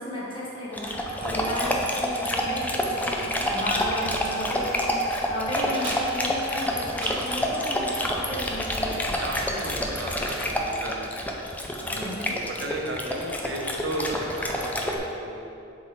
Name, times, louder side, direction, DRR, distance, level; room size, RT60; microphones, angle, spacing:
voice 1, 0.0-9.0 11.9-12.4, left 1 dB, 25° left, -6 dB, 1.1 m, -34 dB
Dog, 0.7-15.0, equal, 10° left, 0.5 m, -28 dB
sound 1, 5.7-7.3 8.7-9.0 9.4-10.5, right 1 dB, 90° right, 1.3 m, -39 dB
voice 2, 9.2-11.1 11.8-15.4, right 1 dB, 60° right, 0 dB, 0.9 m, -35 dB
7.4 x 4.0 x 4.5 m, 2.7 s
head